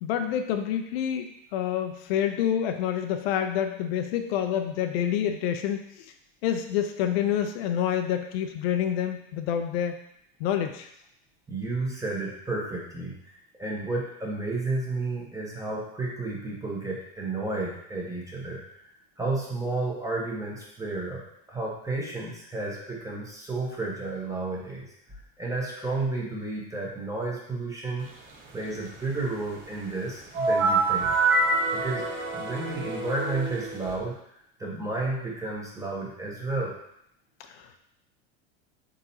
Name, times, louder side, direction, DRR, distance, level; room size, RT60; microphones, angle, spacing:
voice 1, 0.0-6.1 6.4-9.9 10.4-10.9 37.4-37.8, left 9 dB, 70° left, 6 dB, 0.5 m, -28 dB
voice 2, 11.5-13.1 13.6-18.8 19.2-21.2 21.5-24.9 25.4-28.1 28.5-31.1 31.7-32.1 32.3-34.1 34.6-36.7, right 2 dB, 10° right, -3 dB, 1.1 m, -32 dB
sound 1, 30.3-33.9, right 3 dB, 40° right, 0.9 m, -26 dB
4.0 x 3.9 x 2.8 m, 0.75 s
supercardioid pair, 115°, 31 cm